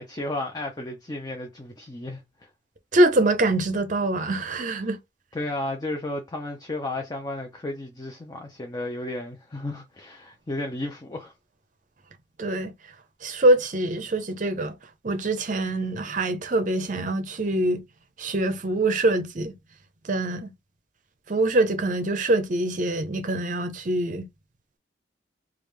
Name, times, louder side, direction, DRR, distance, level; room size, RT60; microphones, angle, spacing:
voice 1, 0.0-2.5 5.3-11.3, left 2 dB, 20° left, 0.5 m, -33 dB
voice 2, 2.9-5.0 12.4-12.7 13.2-14.8 15.0-17.8 18.2-19.6 20.0-20.5 21.3-24.3, right 2 dB, 40° right, 0.6 m, -24 dB
3.3 x 2.4 x 3.2 m
head